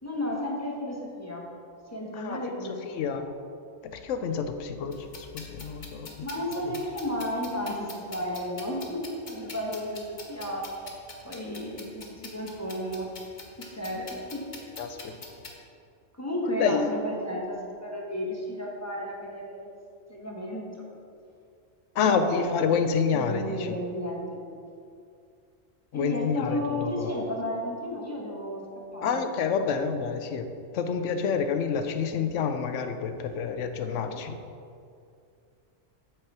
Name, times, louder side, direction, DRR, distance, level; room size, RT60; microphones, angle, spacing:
voice 1, 0.0-1.5 1.9-2.8 3.1-3.2 4.8-4.9 6.2-10.7 11.2-12.1 12.3-13.1 13.7-14.4 16.1-19.7 20.1-20.8 22.0-22.3 23.1-24.2 25.9-28.7 28.9-29.2 33.9-34.2, equal, 15° left, -3 dB, 0.9 m, -33 dB
voice 2, 2.8-3.3 3.9-6.3 6.6-6.8 14.8-15.1 16.5-17.0 21.9-23.8 25.9-27.1 29.0-30.5 30.7-34.4, left 6 dB, 80° left, 8 dB, 0.9 m, -28 dB
sound 1, 4.9-15.5, left 3 dB, 45° left, 0.9 m, -45 dB
7.7 x 4.4 x 4.6 m, 2.4 s
omnidirectional pair, 1.3 m